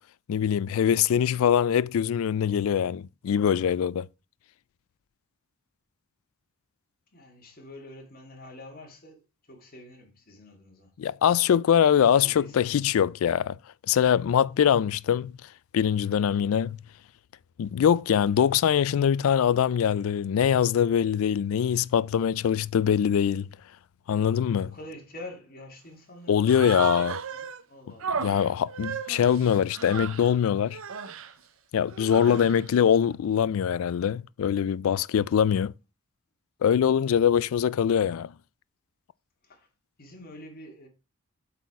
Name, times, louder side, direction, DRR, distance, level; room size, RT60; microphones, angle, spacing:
voice 1, 0.3-4.1 11.0-13.6 13.9-15.3 15.7-16.8 17.6-23.5 24.1-24.7 26.3-27.2 28.2-30.8 31.7-35.7 36.6-38.3, left 8 dB, 70° left, 0.3 m, -23 dB
voice 2, 7.1-9.2 9.5-10.9 12.1-12.7 14.6-14.8 24.3-28.3 39.4-39.7 40.0-40.9, left 1 dB, 40° left, 2.0 m, -47 dB
Human voice, 26.4-27.6 28.0-30.3 30.7-31.3 31.9-32.7, right 6 dB, 65° right, 0.6 m, -35 dB
7.9 x 4.3 x 4.7 m
head